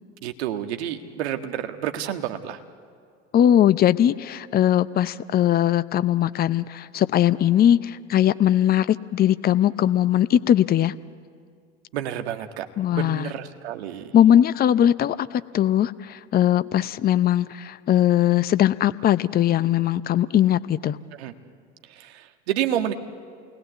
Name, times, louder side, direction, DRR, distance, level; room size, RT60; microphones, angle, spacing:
voice 1, 0.2-2.6 11.9-12.7 12.9-14.1 21.2-21.3 22.0-22.9, right 11 dB, 70° right, 6 dB, 1.7 m, -29 dB
voice 2, 3.3-10.9 12.8-13.3 14.1-21.0, left 11 dB, 30° left, 16 dB, 0.6 m, -20 dB
28.5 x 20.0 x 8.2 m, 2.1 s
hypercardioid pair, 85°, 34 cm